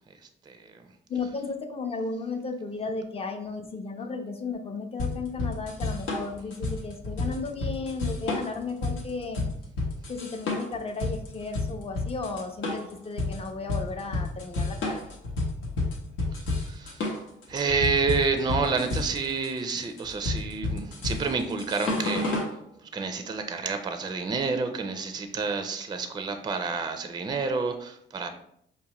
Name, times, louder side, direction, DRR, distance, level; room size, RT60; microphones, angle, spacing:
voice 1, 1.1-9.4 10.1-15.1, left 4 dB, 30° left, 5 dB, 0.6 m, -34 dB
sound 1, 5.0-22.5, left 2 dB, 85° left, 0.9 m, -30 dB
voice 2, 16.3-17.2 17.5-22.4 22.8-28.3, right 4 dB, 20° right, 7 dB, 0.4 m, -29 dB
5.1 x 2.1 x 2.9 m, 0.70 s
cardioid pair, 90°, 20 cm